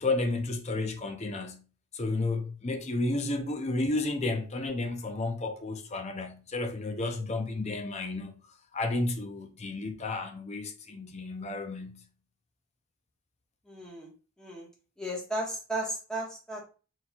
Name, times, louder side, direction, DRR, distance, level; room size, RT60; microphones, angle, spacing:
voice 1, 0.0-1.6 1.9-8.4 8.7-12.0, left 2 dB, 30° left, 0.5 m, -32 dB
voice 2, 13.7-14.1 14.4-14.7 15.0-16.6, right 1 dB, 5° left, 1.3 m, -34 dB
4.3 x 3.9 x 2.3 m
head